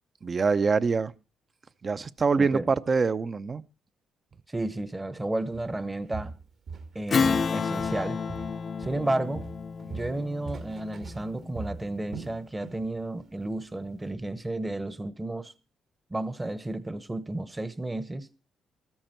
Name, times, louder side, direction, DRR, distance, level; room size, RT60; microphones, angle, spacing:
voice 1, 0.2-1.1 1.8-3.6, right 4 dB, 35° right, 0.7 m, -25 dB
voice 2, 4.5-6.3 6.9-8.2 8.8-9.4 9.9-15.5 16.1-18.3, right 2 dB, 15° right, 1.0 m, -32 dB
Walk footsteps, 5.5-5.8 6.1-7.5 7.8-9.1 9.4-12.9 13.2-13.4 13.9-14.0, right 4 dB, 60° right, 2.4 m, -41 dB
Strum, 7.1-12.0, left 5 dB, 45° left, 0.6 m, -30 dB
14.5 x 13.0 x 4.4 m
cardioid pair, 90°, 0 cm